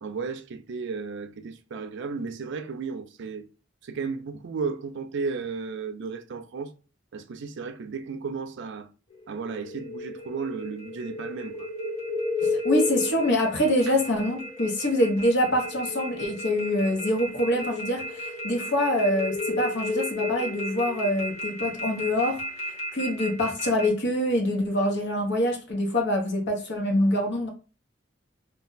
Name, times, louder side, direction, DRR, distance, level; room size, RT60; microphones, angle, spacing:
voice 1, 0.0-3.5 3.8-6.7 7.1-8.9 9.3-11.7 13.9-14.0, right 5 dB, 65° right, 0.4 m, -34 dB
sound 1, 9.1-23.9, left 2 dB, 35° left, 1.0 m, -33 dB
voice 2, 12.4-22.4 22.9-27.5, left 1 dB, 60° left, 0.8 m, -25 dB
2.4 x 2.1 x 3.8 m
head